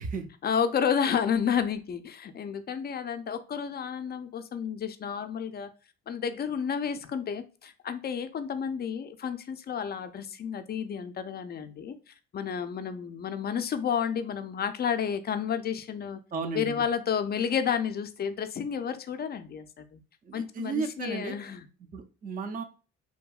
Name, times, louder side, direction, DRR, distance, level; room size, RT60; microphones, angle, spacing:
voice 1, 0.4-5.7 6.1-12.0 12.3-16.2 16.5-20.0 20.3-21.7, left 7 dB, 35° left, 9 dB, 0.4 m, -31 dB
voice 2, 16.3-16.8 20.2-21.4 21.9-22.6, right 4 dB, 30° right, 6 dB, 0.4 m, -34 dB
2.8 x 2.6 x 2.3 m, 0.35 s
cardioid pair, 90°, 30 cm